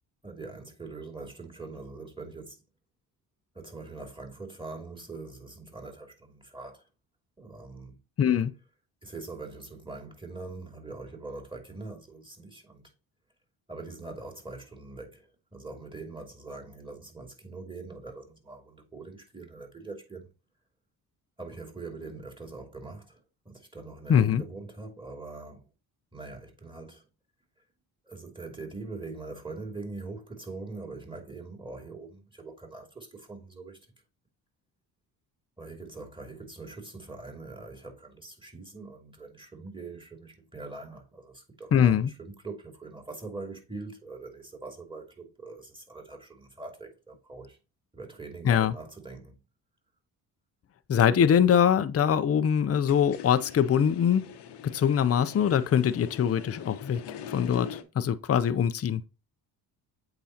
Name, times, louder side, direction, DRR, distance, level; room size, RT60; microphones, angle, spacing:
voice 1, 0.2-2.6 3.5-6.9 7.4-8.0 9.0-12.9 13.7-20.3 21.4-25.7 26.1-27.0 28.0-33.9 35.6-47.6 47.9-49.4, right 3 dB, 10° right, 2.6 m, -43 dB
voice 2, 8.2-8.5 24.1-24.4 41.7-42.1 48.4-48.7 50.9-54.3 54.6-57.0 57.3-59.0, left 8 dB, 35° left, 0.6 m, -23 dB
sound 1, 52.7-57.8, left 8 dB, 65° left, 1.0 m, -43 dB
8.4 x 3.9 x 2.9 m
supercardioid pair, 60°, 45 cm